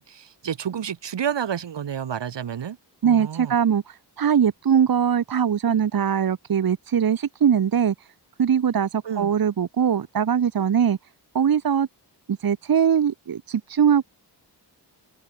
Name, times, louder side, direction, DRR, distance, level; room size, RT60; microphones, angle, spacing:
voice 1, 0.0-2.8 3.0-3.6 9.0-9.3, right 8 dB, 85° right, 4.2 m, -30 dB
voice 2, 3.0-7.9 8.4-11.0 11.3-11.9 12.3-14.0, right 8 dB, 55° right, 1.6 m, -21 dB
open air
wide cardioid pair, 175°, 42 cm